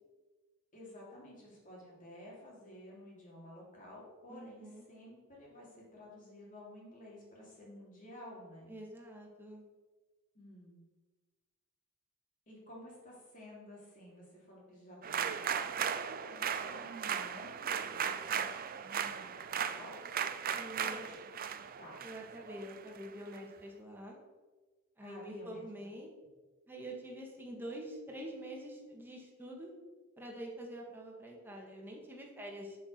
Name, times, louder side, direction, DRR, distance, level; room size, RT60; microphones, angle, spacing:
voice 1, 0.7-8.7 10.3-10.8 12.5-20.0 20.8-21.2 21.8-21.9 25.0-25.9, left 1 dB, 40° left, -4 dB, 3.4 m, -52 dB
voice 2, 4.3-4.8 8.7-9.6 20.5-21.1 22.0-24.2 25.0-26.1 26.7-29.7 30.2-32.8, right 1 dB, 10° right, -1 dB, 1.8 m, -46 dB
sound 1, 15.0-23.4, right 8 dB, 45° right, 0.5 m, -37 dB
7.2 x 6.2 x 6.7 m, 1.3 s
head